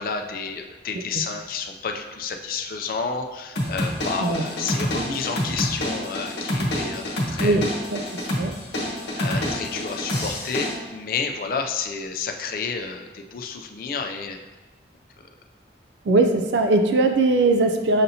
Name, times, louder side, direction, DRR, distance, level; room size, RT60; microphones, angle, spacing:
voice 1, 0.0-7.6 9.2-14.4, left 5 dB, 50° left, 4 dB, 0.4 m, -30 dB
sound 1, 3.6-10.8, left 1 dB, 75° left, 0.9 m, -27 dB
voice 2, 7.4-8.5 9.3-9.4 16.1-18.0, right 2 dB, 80° right, 5 dB, 0.4 m, -21 dB
6.6 x 2.8 x 2.7 m, 1.2 s
head